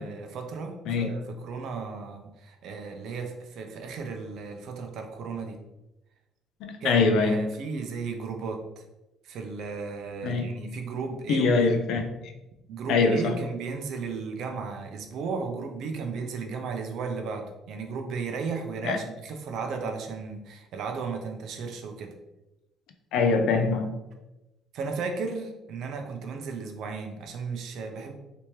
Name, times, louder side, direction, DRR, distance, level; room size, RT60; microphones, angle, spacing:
voice 1, 0.0-5.6 6.8-8.8 9.2-11.8 12.7-22.1 24.7-28.2, right 4 dB, 55° right, 4 dB, 0.5 m, -35 dB
voice 2, 6.7-7.4 10.2-10.5 11.3-12.3 12.9-13.3 18.8-19.0 23.1-23.9, left 4 dB, 65° left, 6 dB, 0.4 m, -23 dB
3.4 x 2.9 x 3.0 m, 0.99 s
cardioid pair, 165°, 0 cm